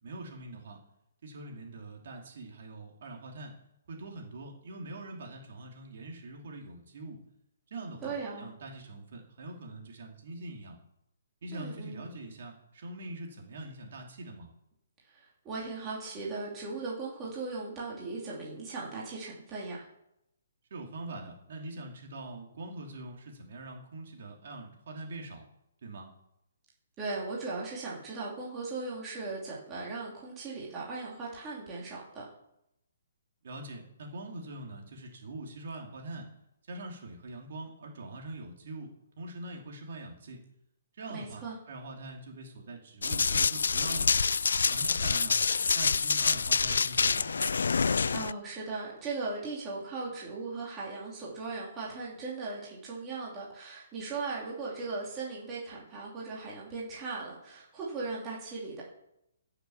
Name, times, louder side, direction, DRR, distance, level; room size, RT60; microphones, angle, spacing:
voice 1, 0.0-0.8 1.2-3.5 3.9-7.2 7.7-10.8 11.4-14.5 20.7-25.5 25.8-26.1 33.4-36.3 36.7-40.4 40.9-44.1 44.7-45.4 45.7-47.4, right 2 dB, 45° right, 1 dB, 3.0 m, -43 dB
voice 2, 8.0-8.5 11.5-12.1 15.1-19.9 27.0-32.3 41.1-41.6 48.1-58.8, right 3 dB, 10° right, -5 dB, 2.7 m, -38 dB
Run, 43.0-48.3, left 5 dB, 85° left, 0.4 m, -27 dB
15.5 x 6.9 x 7.2 m, 0.82 s
hypercardioid pair, 175°, 0 cm